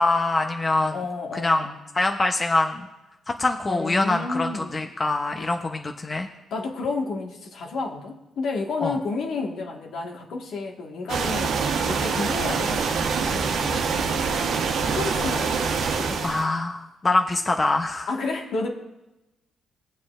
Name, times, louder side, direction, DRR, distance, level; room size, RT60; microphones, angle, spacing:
voice 1, 0.0-1.0 1.3-1.6 1.9-2.9 3.3-6.3 8.8-9.0 14.8-14.9 16.2-18.1, left 2 dB, 25° left, 4 dB, 0.8 m, -24 dB
voice 2, 0.9-1.7 3.7-4.9 5.4-5.5 6.5-11.6 11.9-14.3 14.8-16.3 18.1-18.7, left 3 dB, 70° left, 1 dB, 1.6 m, -31 dB
sound 1, 11.1-16.4, right 5 dB, 80° right, 1.2 m, -25 dB
21.5 x 7.3 x 2.5 m, 0.99 s
cardioid pair, 90°, 0 cm